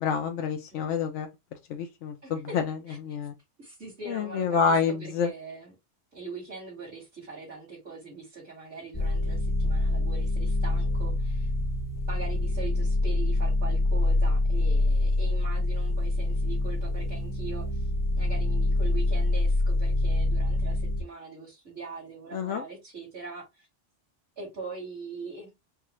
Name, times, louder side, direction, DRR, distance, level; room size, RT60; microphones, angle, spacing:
voice 1, 0.0-1.3 1.7-2.8 3.0-3.3 4.1-5.3 22.3-22.6, left 6 dB, 80° left, 0.9 m, -28 dB
voice 2, 2.2-2.6 2.9-3.0 3.6-5.7 6.1-11.5 12.1-17.9 18.1-23.7 24.4-25.5, right 4 dB, 55° right, 2.4 m, -42 dB
sound 1, 8.9-21.0, left 2 dB, 20° left, 0.6 m, -26 dB
4.8 x 2.4 x 3.0 m
omnidirectional pair, 1.2 m